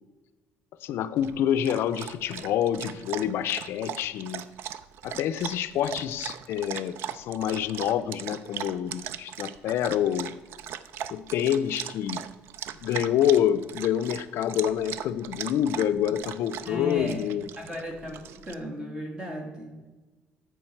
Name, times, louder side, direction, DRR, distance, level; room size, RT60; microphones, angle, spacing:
voice 1, 0.8-4.5 5.0-10.3 11.1-12.3 12.8-17.5, left 10 dB, 70° left, 13 dB, 0.4 m, -27 dB
Dog, 1.2-18.5, right 10 dB, 70° right, 0.4 m, -39 dB
voice 2, 16.7-20.0, left 1 dB, 20° right, 1 dB, 2.1 m, -36 dB
13.5 x 4.7 x 4.4 m, 1.2 s
cardioid pair, 140°, 4 cm